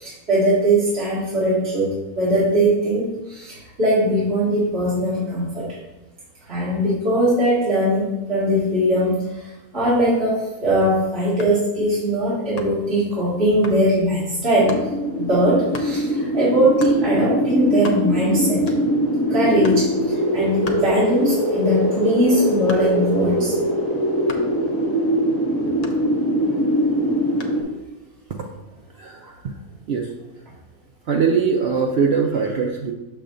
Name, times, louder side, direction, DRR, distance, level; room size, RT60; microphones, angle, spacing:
voice 1, 0.0-5.8 6.5-14.8 15.2-18.7 19.3-23.5, right 1 dB, 45° right, -11 dB, 2.3 m, -20 dB
sound 1, 11.4-11.7 12.6-12.9 13.6-13.9 14.7-14.9 15.7-16.0 16.8-17.0 17.5-17.6 17.7-18.3 18.7-19.1 19.6-19.9 20.6-21.4 21.8-23.2 24.3-24.6 25.8-26.5 27.4-27.7, left 2 dB, 50° left, 0.5 m, -35 dB
sound 2, 14.6-27.6, equal, 10° left, 1.5 m, -22 dB
voice 2, 28.9-29.6 29.9-30.1 31.1-32.9, right 5 dB, 65° right, 1 dB, 0.6 m, -21 dB
6.9 x 6.8 x 2.5 m, 1.0 s
omnidirectional pair, 1.5 m